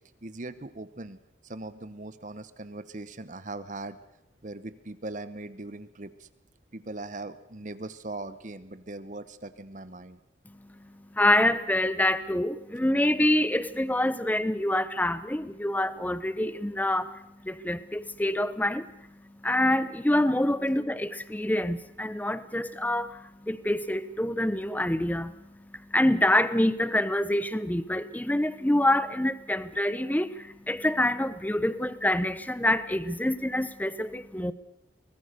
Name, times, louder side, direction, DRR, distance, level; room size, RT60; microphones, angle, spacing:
voice 1, 0.2-1.2 1.4-4.0 4.4-6.3 6.7-10.2, right 2 dB, 40° right, 14 dB, 0.9 m, -40 dB
voice 2, 10.5-34.5, left 1 dB, 10° left, 15 dB, 0.8 m, -26 dB
24.0 x 19.0 x 6.7 m, 0.87 s
head